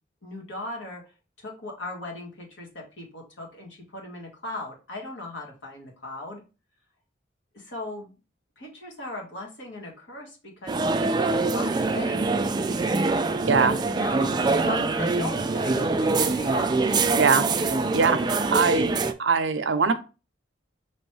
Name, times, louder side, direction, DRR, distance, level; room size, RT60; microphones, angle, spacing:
voice 1, 0.2-1.0 1.4-6.4 7.5-8.1 8.6-12.3 13.6-16.8, left 2 dB, 70° left, 0 dB, 1.7 m, -37 dB
sound 1, 10.7-19.1, right 3 dB, 20° right, 0.3 m, -24 dB
voice 2, 13.4-13.8 17.1-17.5 17.9-19.9, right 5 dB, 70° right, 9 dB, 0.6 m, -22 dB
5.2 x 3.1 x 3.2 m, 0.32 s
head